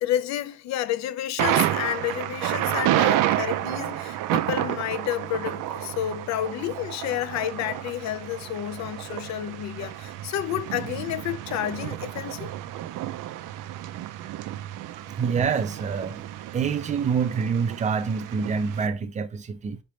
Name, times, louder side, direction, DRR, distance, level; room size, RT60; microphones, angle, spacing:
voice 1, 0.0-12.5, left 11 dB, 55° left, 0.5 m, -30 dB
Thunder, 1.4-18.9, right 14 dB, 75° right, 0.5 m, -30 dB
voice 2, 15.0-16.3 16.5-19.8, right 6 dB, 25° right, 0.4 m, -26 dB
5.0 x 3.3 x 2.9 m
cardioid pair, 155°, 33 cm